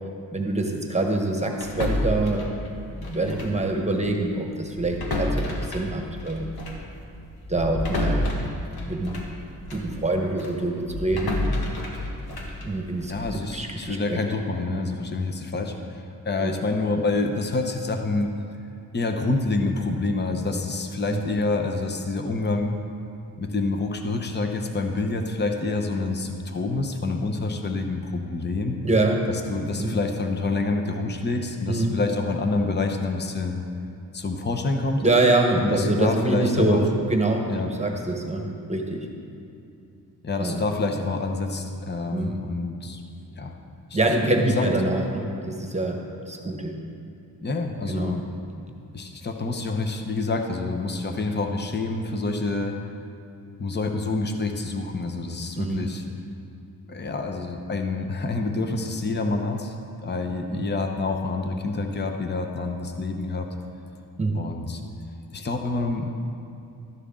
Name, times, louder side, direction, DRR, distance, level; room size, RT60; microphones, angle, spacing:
voice 1, 0.3-2.5 3.0-6.5 7.5-8.3 8.8-9.2 9.7-11.4 12.6-14.2 14.7-14.8 16.4-16.5 21.1-21.2 28.8-29.2 29.8-29.9 31.7-31.9 35.0-39.1 40.4-40.6 42.1-42.3 43.9-46.0 46.3-46.8 47.9-48.2 55.6-55.9 60.5-60.6 64.2-64.4, right 2 dB, 20° right, 1 dB, 1.2 m, -25 dB
sound 1, 1.6-3.7 3.9-4.1 4.7-10.0 10.4-13.5, left 1 dB, 85° left, 1.6 m, -30 dB
voice 2, 13.1-18.3 18.9-22.7 23.4-28.8 29.3-33.6 34.1-35.0 35.6-36.8 37.5-37.7 40.2-43.0 43.4-43.5 43.9-44.7 47.4-48.2 48.9-52.8 53.6-56.0 56.9-59.7 60.0-63.5 64.3-64.8 65.3-66.2, left 3 dB, 30° left, 4 dB, 0.9 m, -27 dB
12.5 x 11.0 x 3.8 m, 2.6 s
wide cardioid pair, 120°, 37 cm